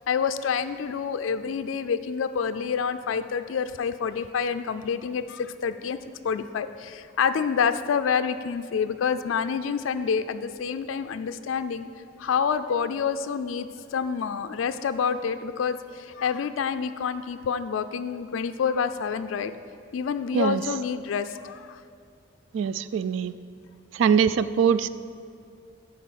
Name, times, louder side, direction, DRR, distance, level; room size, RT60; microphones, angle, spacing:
voice 1, 0.1-6.0 6.2-11.9 12.2-19.5 19.9-21.8, left 6 dB, 80° left, 10 dB, 0.4 m, -28 dB
voice 2, 22.5-23.3 24.0-24.9, right 7 dB, 70° right, 15 dB, 0.3 m, -22 dB
10.0 x 4.8 x 7.3 m, 2.4 s
head